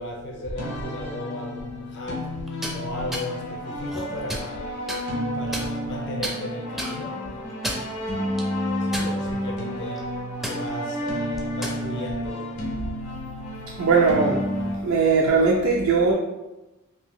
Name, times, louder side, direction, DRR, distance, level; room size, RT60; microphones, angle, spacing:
voice 1, 0.0-4.9 5.3-12.5, left 1 dB, 55° left, 0 dB, 0.5 m, -36 dB
sound 1, 0.5-14.8, equal, 80° left, 0.8 m, -31 dB
sound 2, 2.5-2.8 3.1-3.3 3.8-4.5 4.9-5.0 5.5-5.9 6.2-6.3 6.8-6.9 7.5-7.9 8.4-8.5 8.9-9.4 9.8-10.0 10.4-10.6 11.4-11.8, right 1 dB, ahead, 0.4 m, -31 dB
voice 2, 13.8-14.4 14.8-16.1, right 4 dB, 60° right, -3 dB, 0.4 m, -19 dB
2.7 x 2.7 x 3.6 m, 1.1 s
head